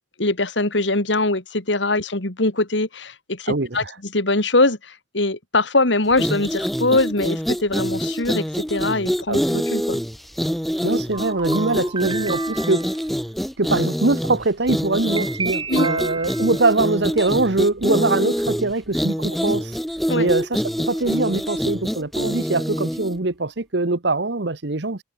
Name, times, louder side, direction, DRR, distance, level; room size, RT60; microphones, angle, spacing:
voice 1, 0.2-10.0 15.7-15.9 20.1-20.3, left 2 dB, 75° left, 2.9 m, -22 dB
voice 2, 3.5-3.9 9.3-9.4 10.8-12.9 13.6-19.8 20.1-20.6 20.9-25.0, right 2 dB, 65° right, 1.2 m, -22 dB
sound 1, 6.1-23.2, equal, ahead, 0.6 m, -25 dB
sound 2, 11.1-13.0 15.2-16.7, right 5 dB, 25° right, 1.4 m, -31 dB
head